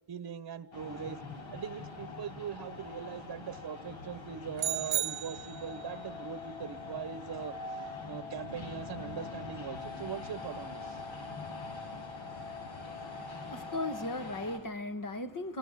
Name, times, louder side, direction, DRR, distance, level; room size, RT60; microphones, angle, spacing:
voice 1, 0.1-1.2 1.5-11.0, right 8 dB, 45° right, 15 dB, 1.1 m, -41 dB
sound 1, 0.7-14.6, left 2 dB, 65° left, 8.0 m, -44 dB
sound 2, 4.6-5.9, right 11 dB, 70° right, 1.1 m, -34 dB
sound 3, 5.5-14.1, left 8 dB, 25° left, 7.5 m, -47 dB
voice 2, 12.9-15.6, left 2 dB, 40° left, 9 dB, 2.0 m, -38 dB
30.0 x 22.0 x 8.5 m, 0.66 s
wide cardioid pair, 175°, 49 cm